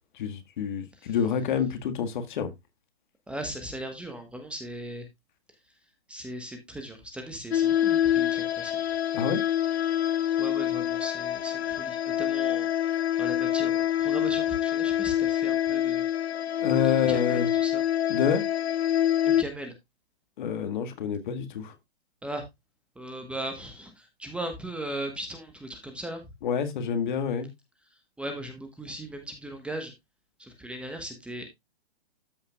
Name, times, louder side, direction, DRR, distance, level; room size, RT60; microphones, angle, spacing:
voice 1, 0.2-2.5 9.1-9.4 16.6-17.5 18.1-18.4 20.4-21.7 26.4-27.5, left 7 dB, 50° left, 1.8 m, -27 dB
voice 2, 3.3-5.0 6.1-8.7 10.4-12.7 13.2-16.1 17.1-17.8 19.2-19.7 22.2-22.4 23.0-26.2 28.2-29.9 30.4-31.5, right 1 dB, 5° right, 1.2 m, -38 dB
sound 1, 7.5-19.4, left 11 dB, 85° left, 0.5 m, -26 dB
13.0 x 5.6 x 2.3 m
hypercardioid pair, 140°, 31 cm